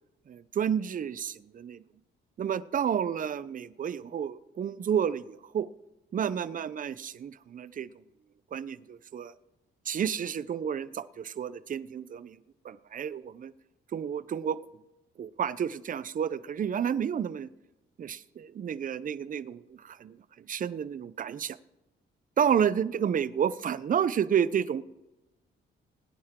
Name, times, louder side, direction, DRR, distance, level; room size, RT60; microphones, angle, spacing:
voice 1, 0.3-1.8 2.4-5.7 6.1-7.9 8.5-9.3 9.9-13.5 13.9-14.6 15.2-17.5 18.0-21.6 22.4-24.8, right 8 dB, 45° right, 16 dB, 0.6 m, -30 dB
21.0 x 9.5 x 3.7 m, 0.96 s
cardioid pair, 90°, 20 cm